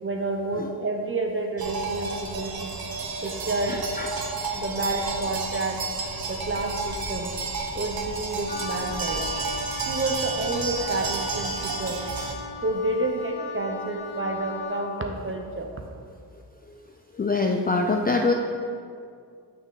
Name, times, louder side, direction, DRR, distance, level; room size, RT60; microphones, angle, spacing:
voice 1, 0.0-2.8 3.2-3.9 4.5-5.8 6.3-7.4 7.7-9.3 9.9-12.0 12.6-15.7, right 2 dB, 30° right, 2 dB, 0.8 m, -29 dB
sound 1, 1.6-12.3, right 3 dB, 50° right, 1.1 m, -31 dB
voice 2, 3.7-4.1 16.6-16.8 17.1-18.3, left 3 dB, 20° left, 3 dB, 0.4 m, -25 dB
Wind instrument woodwind instrument, 8.5-14.9, left 4 dB, 55° left, 1.5 m, -38 dB
6.5 x 5.9 x 3.9 m, 2.3 s
cardioid pair, 60°, 46 cm